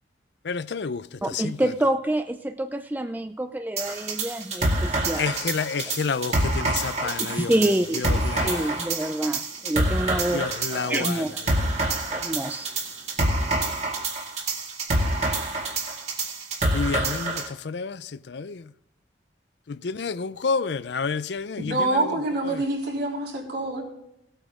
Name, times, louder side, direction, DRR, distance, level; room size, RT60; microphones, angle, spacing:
voice 1, 0.5-1.0 5.2-7.5 8.3-8.6 10.3-10.9 16.7-18.0 18.3-18.5 19.8-21.6, left 5 dB, 70° left, 0.5 m, -29 dB
voice 2, 1.2-5.3 7.0-11.5 12.1-12.8, right 1 dB, 10° right, 0.4 m, -27 dB
sound 1, 3.8-17.5, right 2 dB, 40° right, 2.2 m, -27 dB
voice 3, 21.6-23.8, right 2 dB, 60° right, 3.9 m, -26 dB
18.0 x 8.9 x 3.6 m
head